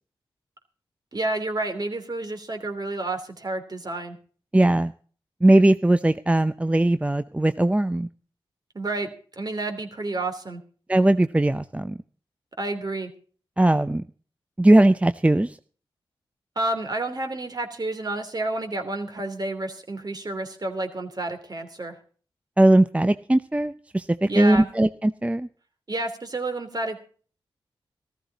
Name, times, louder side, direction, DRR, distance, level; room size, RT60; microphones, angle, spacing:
voice 1, 1.1-4.2 8.7-9.1 9.4-10.6 12.6-13.1 16.6-22.0 24.3-24.7 25.9-27.0, right 2 dB, 45° right, 6 dB, 3.0 m, -30 dB
voice 2, 4.5-4.9 5.4-8.1 10.9-12.0 13.6-14.0 14.6-15.6 22.6-25.5, right 1 dB, 15° right, 11 dB, 0.6 m, -19 dB
14.5 x 14.5 x 4.0 m, 0.42 s
cardioid pair, 45°, 10 cm